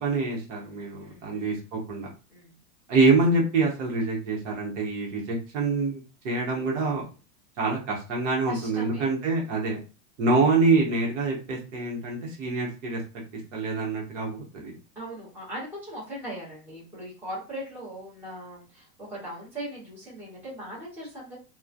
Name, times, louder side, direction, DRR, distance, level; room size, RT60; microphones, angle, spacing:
voice 1, 0.0-2.1 2.9-7.0 7.6-9.8 10.2-13.0 13.5-14.7, right 3 dB, 50° right, -1 dB, 1.0 m, -25 dB
voice 2, 0.9-1.6 2.3-2.5 8.4-9.1 14.9-21.4, right 1 dB, 5° right, -10 dB, 0.9 m, -39 dB
3.0 x 2.2 x 2.4 m, 0.33 s
supercardioid pair, 175°, 46 cm